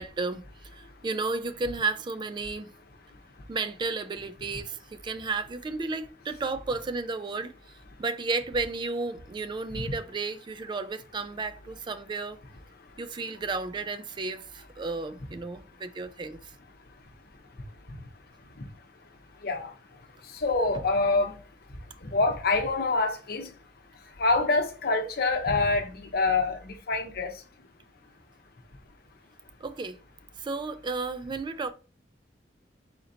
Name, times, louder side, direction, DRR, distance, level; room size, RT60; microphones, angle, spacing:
voice 1, 0.0-2.7 3.5-7.5 8.0-12.4 13.0-16.5 29.6-30.0 30.4-31.7, right 3 dB, 25° right, 0.3 m, -33 dB
voice 2, 20.3-21.3 22.0-23.5 24.2-27.3, left 3 dB, 60° left, 0.8 m, -26 dB
4.3 x 3.8 x 2.8 m
head